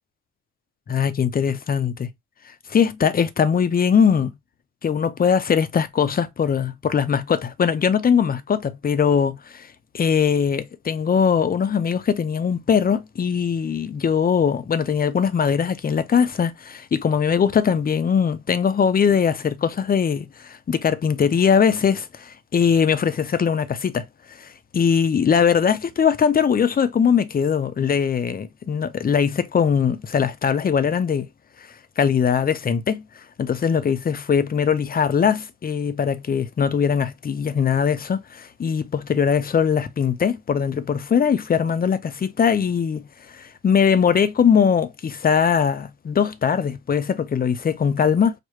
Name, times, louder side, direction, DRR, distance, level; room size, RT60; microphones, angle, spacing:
voice 1, 0.9-2.1 2.7-4.3 4.8-9.7 9.9-31.3 32.0-33.0 33.4-43.1 43.3-48.3, left 7 dB, 30° left, 0.5 m, -21 dB
4.8 x 2.1 x 3.1 m
cardioid pair, 90°, 30 cm